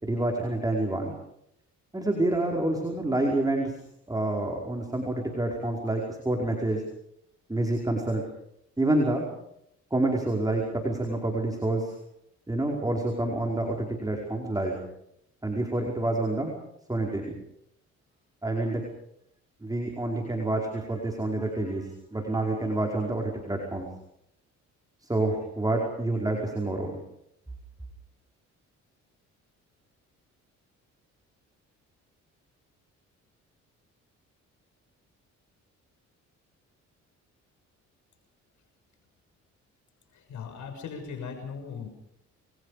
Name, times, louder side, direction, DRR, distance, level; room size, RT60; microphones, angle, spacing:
voice 1, 0.0-1.1 1.9-3.8 4.1-6.8 7.5-8.2 8.8-9.3 9.9-11.9 12.5-14.8 15.4-16.5 16.9-17.3 18.4-18.8 19.6-23.9 25.0-27.0, right 2 dB, 10° right, 1 dB, 5.1 m, -28 dB
voice 2, 40.1-41.9, left 6 dB, 70° left, 5 dB, 6.5 m, -38 dB
29.0 x 23.0 x 5.1 m, 0.76 s
cardioid pair, 90°, 30 cm